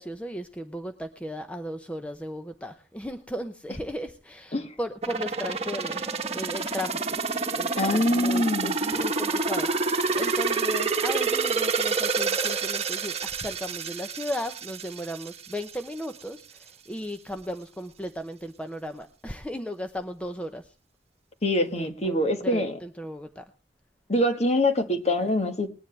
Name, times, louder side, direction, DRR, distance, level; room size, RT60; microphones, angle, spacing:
voice 1, 0.0-7.0 7.5-20.6 21.8-23.4, equal, 5° left, 7 dB, 0.7 m, -36 dB
sound 1, 5.0-15.8 16.1-16.2, right 4 dB, 35° right, 1.4 m, -28 dB
voice 2, 7.8-8.7 21.4-22.8 24.1-25.7, left 1 dB, 40° left, 7 dB, 1.5 m, -24 dB
20.5 x 10.0 x 3.3 m, 0.32 s
head